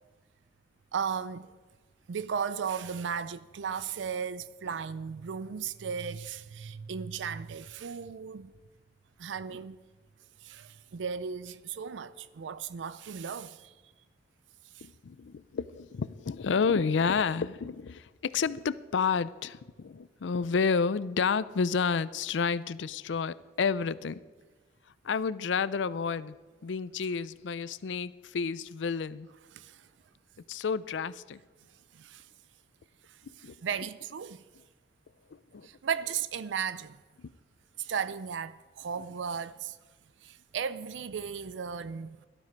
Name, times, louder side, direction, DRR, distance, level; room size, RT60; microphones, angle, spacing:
voice 1, 0.9-1.5 2.1-8.5 9.2-9.8 10.4-13.7 14.7-14.9 29.5-29.9 31.9-32.3 33.1-34.4 35.6-37.0 37.8-39.8 40.2-42.3, right 6 dB, 80° right, 0.4 m, -36 dB
voice 2, 14.8-24.2 25.0-26.3 26.6-29.3 30.5-31.4 33.4-33.5 35.3-35.7 37.2-37.3, left 5 dB, 80° left, 0.5 m, -30 dB
17.5 x 12.5 x 4.6 m
head